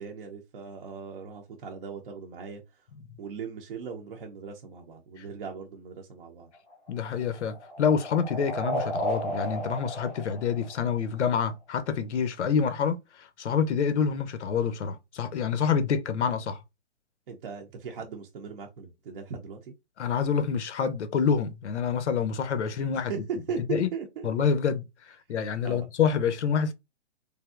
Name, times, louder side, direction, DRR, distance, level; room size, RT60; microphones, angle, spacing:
voice 1, 0.0-2.8 3.2-6.5 17.3-19.7 22.9-24.3 25.6-25.9, right 5 dB, 45° right, 0.6 m, -38 dB
sound 1, 6.5-11.3, equal, 5° left, 0.5 m, -34 dB
voice 2, 6.9-16.6 20.0-23.1 23.7-23.9 24.2-24.8 25.3-26.7, left 6 dB, 70° left, 0.7 m, -27 dB
3.3 x 2.5 x 2.4 m
hypercardioid pair, 155°, 36 cm